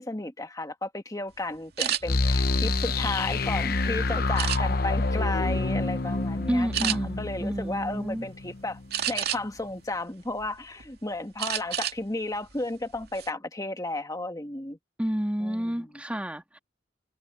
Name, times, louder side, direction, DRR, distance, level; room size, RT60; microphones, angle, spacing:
voice 1, 0.0-8.8 9.1-14.8 15.4-15.9, left 2 dB, 20° left, 1.9 m, -33 dB
sound 1, 1.8-2.0 2.6-3.6 4.4-4.9 5.5-5.7 6.1-6.2 6.7-7.0 8.9-9.6 10.1-10.9 11.4-12.0 12.3-12.5 12.9-13.3, right 10 dB, 60° right, 2.6 m, -30 dB
sound 2, 2.0-8.8, left 3 dB, 55° left, 0.9 m, -27 dB
voice 2, 6.5-8.3 15.0-16.6, equal, 5° right, 2.2 m, -30 dB
head